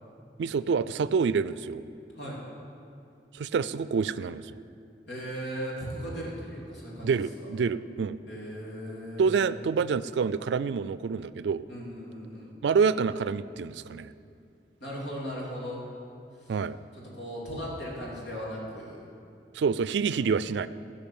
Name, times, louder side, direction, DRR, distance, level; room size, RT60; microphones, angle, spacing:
voice 1, 0.4-1.8 3.3-4.6 7.0-8.2 9.2-11.6 12.6-14.1 16.5-16.8 19.5-20.7, right 5 dB, 80° right, 16 dB, 0.3 m, -27 dB
voice 2, 5.1-7.1 8.3-9.5 11.7-12.5 14.8-15.8 16.4-16.5 17.1-19.1 20.1-20.4, equal, 85° left, -4 dB, 3.1 m, -37 dB
16.0 x 5.5 x 7.2 m, 2.5 s
head